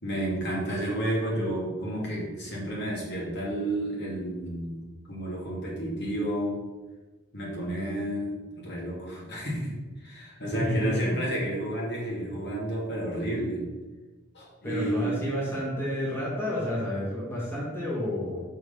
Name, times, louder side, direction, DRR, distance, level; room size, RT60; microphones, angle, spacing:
voice 1, 0.0-4.8 5.1-6.6 7.3-9.7 10.0-13.6 14.3-15.2, right 1 dB, 55° left, -4 dB, 2.6 m, -31 dB
voice 2, 10.5-11.2 14.6-18.4, left 1 dB, 10° left, -7 dB, 2.2 m, -30 dB
6.6 x 4.8 x 5.7 m, 1.2 s
head